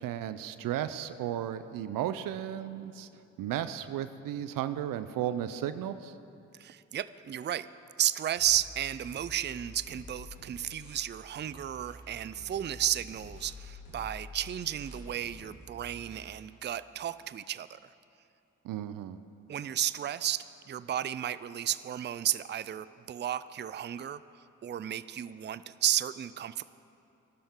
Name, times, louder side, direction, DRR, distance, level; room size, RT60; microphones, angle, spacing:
voice 1, 0.0-3.1 3.4-6.1 18.6-19.2, right 11 dB, 75° right, 12 dB, 0.6 m, -34 dB
voice 2, 6.6-7.7 8.0-17.8 19.5-24.2 24.6-26.6, right 11 dB, 35° right, 15 dB, 0.4 m, -33 dB
sound 1, 8.4-11.1 11.4-16.4, left 2 dB, 85° left, 3.8 m, -49 dB
18.5 x 12.0 x 3.8 m, 2.6 s
hypercardioid pair, 40°, 34 cm